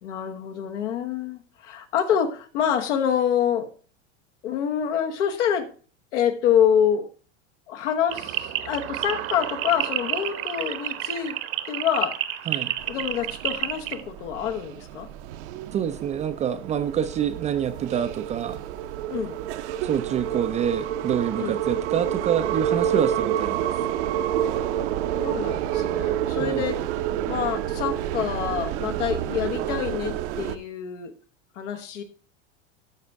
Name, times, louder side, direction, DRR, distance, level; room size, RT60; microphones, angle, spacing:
voice 1, 0.0-3.7 4.4-5.7 6.1-7.1 7.7-11.4 11.7-12.2 12.9-15.1 19.1-19.4 21.4-21.6 25.2-26.8 27.3-31.1 31.6-32.0, left 8 dB, 80° left, 1.3 m, -26 dB
sound 1, 8.1-14.0, right 12 dB, 40° right, 0.8 m, -30 dB
sound 2, 12.8-30.6, right 11 dB, 70° right, 0.7 m, -29 dB
voice 2, 15.7-18.6 19.8-23.7 26.4-26.6, right 9 dB, 20° right, 0.3 m, -26 dB
12.5 x 4.3 x 3.5 m
supercardioid pair, 115°, 36 cm